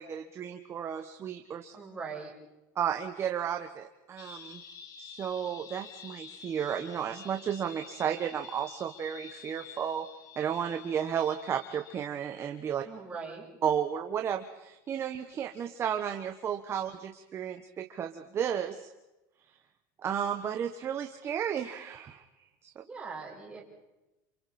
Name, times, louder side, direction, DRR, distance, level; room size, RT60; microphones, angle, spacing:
voice 1, 0.0-1.8 2.8-4.6 5.0-10.1 10.4-12.8 13.6-18.9 20.0-22.2 22.6-22.7, right 8 dB, 25° right, 5 dB, 1.2 m, -33 dB
voice 2, 1.7-2.3 12.8-13.5 22.8-23.6, right 5 dB, 10° right, -4 dB, 6.7 m, -41 dB
sound 1, 4.2-12.1, left 7 dB, 35° left, 2.0 m, -49 dB
28.5 x 28.0 x 4.3 m, 1.0 s
supercardioid pair, 150°, 10 cm